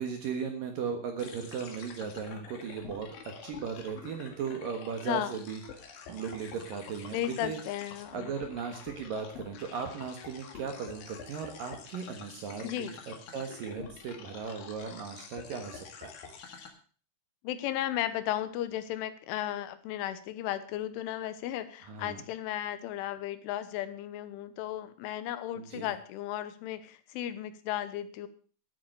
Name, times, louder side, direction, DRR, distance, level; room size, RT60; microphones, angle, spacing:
voice 1, 0.0-5.6 6.1-7.2 7.4-7.6 8.1-16.1 21.9-22.2 25.6-25.9, right 6 dB, 60° right, 5 dB, 2.5 m, -37 dB
sound 1, 1.2-16.7, left 6 dB, 60° left, 3.1 m, -48 dB
voice 2, 7.1-8.3 12.6-13.0 17.4-28.3, left 12 dB, 85° left, 13 dB, 3.5 m, -35 dB
14.0 x 8.8 x 6.6 m, 0.42 s
omnidirectional pair, 5.5 m